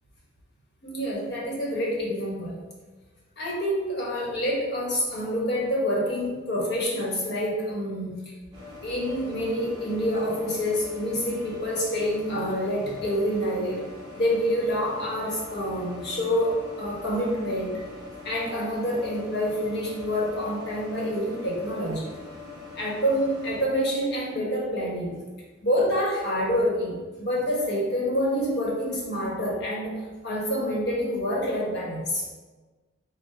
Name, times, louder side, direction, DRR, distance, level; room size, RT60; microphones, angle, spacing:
voice 1, 0.8-2.6 3.4-8.3 8.8-13.8 14.2-17.8 18.2-22.1 22.7-25.2 25.6-29.9 30.2-32.2, equal, 60° left, -4 dB, 1.2 m, -27 dB
sound 1, 8.5-23.6, left 3 dB, 20° right, 1.3 m, -43 dB
4.7 x 2.2 x 4.4 m, 1.3 s
head